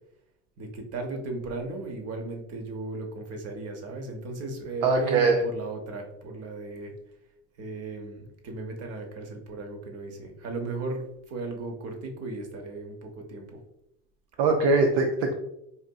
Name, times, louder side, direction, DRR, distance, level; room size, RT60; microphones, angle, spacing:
voice 1, 0.6-6.9 7.6-13.6, right 2 dB, 45° right, 4 dB, 0.9 m, -36 dB
voice 2, 4.8-5.4 14.4-15.3, right 3 dB, 65° right, 3 dB, 0.5 m, -22 dB
4.1 x 2.6 x 2.3 m, 0.82 s
supercardioid pair, 90°, 34 cm